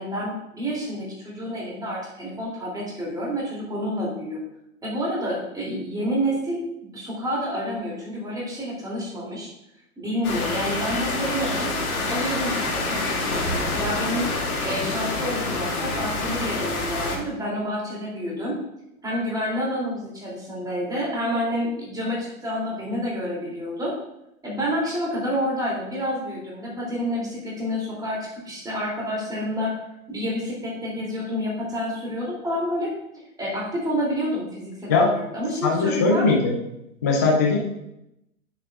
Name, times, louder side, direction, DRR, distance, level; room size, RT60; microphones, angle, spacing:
voice 1, 0.0-4.4 4.8-9.5 10.0-11.7 12.1-14.3 14.6-18.6 19.0-23.9 24.4-28.2 28.5-29.7 30.1-32.9 33.4-36.2, equal, 10° right, -4 dB, 2.9 m, -28 dB
sound 1, 10.2-17.2, left 2 dB, 70° left, 2.4 m, -27 dB
voice 2, 35.6-36.6 37.0-37.6, left 3 dB, 15° left, -1 dB, 0.3 m, -19 dB
10.0 x 7.1 x 2.4 m, 0.83 s
hypercardioid pair, 120°, 44 cm